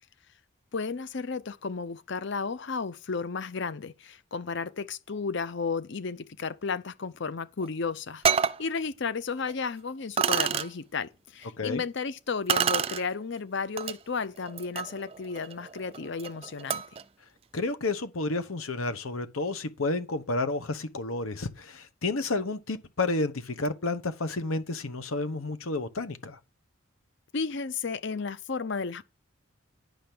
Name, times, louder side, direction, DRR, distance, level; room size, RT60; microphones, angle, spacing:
voice 1, 0.7-16.8 27.3-29.0, left 4 dB, 55° left, 0.6 m, -33 dB
sound 1, 7.6-7.7 8.2-8.6 9.5-9.6 10.2-10.7 12.5-13.0 13.8-13.9 14.4-17.0, right 7 dB, 30° right, 0.4 m, -28 dB
voice 2, 17.5-26.4, left 2 dB, 80° left, 1.0 m, -31 dB
10.5 x 5.1 x 6.0 m
head